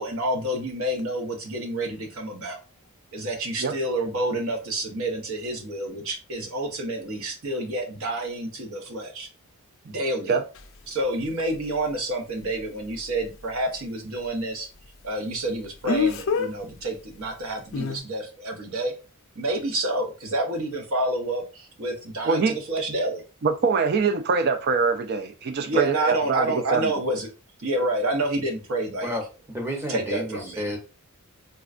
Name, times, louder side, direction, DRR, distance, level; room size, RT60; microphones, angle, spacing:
voice 1, 0.0-2.6 3.1-9.3 9.8-10.4 10.9-14.7 15.0-18.9 19.3-23.2 25.6-27.3 27.6-29.1 29.9-30.8, right 1 dB, 65° right, 0.8 m, -28 dB
Speech, 10.6-10.7 15.9-16.5 17.7-18.0, left 5 dB, 60° left, 0.4 m, -24 dB
voice 2, 23.4-26.9, right 5 dB, 45° right, 0.3 m, -23 dB
voice 3, 29.0-30.8, equal, 10° right, 0.7 m, -31 dB
4.2 x 2.3 x 2.4 m
head